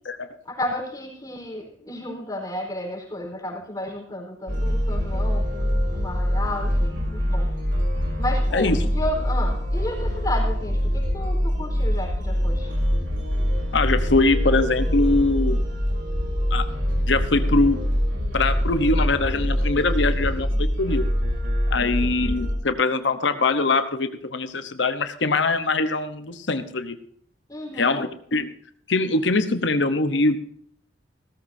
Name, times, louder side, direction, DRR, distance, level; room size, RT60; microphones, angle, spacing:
voice 1, 0.4-7.5 8.2-12.7 21.8-22.2 27.5-28.0, left 1 dB, 20° left, -2 dB, 4.4 m, -32 dB
sound 1, 4.5-22.5, equal, 80° right, 3.8 m, -24 dB
voice 2, 13.7-15.6 16.5-16.6 17.1-17.8 18.3-21.0 21.7-27.0 27.8-28.5 28.9-30.4, left 3 dB, 75° left, 10 dB, 1.0 m, -22 dB
17.0 x 14.0 x 2.7 m, 0.65 s
head